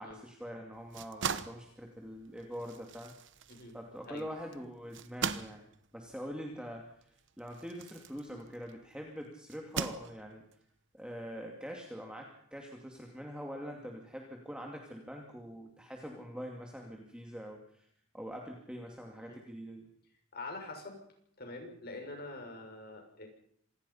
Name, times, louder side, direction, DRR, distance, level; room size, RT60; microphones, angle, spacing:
voice 1, 0.0-3.1 3.7-5.6 5.9-6.9 7.4-10.4 10.9-17.9 18.1-19.9, equal, 5° right, 1 dB, 2.3 m, -44 dB
sound 1, 0.7-8.8 9.5-10.5, right 6 dB, 60° right, 1.1 m, -41 dB
voice 2, 20.3-21.0 21.4-23.3, left 2 dB, 45° left, 3 dB, 6.4 m, -44 dB
26.5 x 18.5 x 5.7 m, 0.68 s
head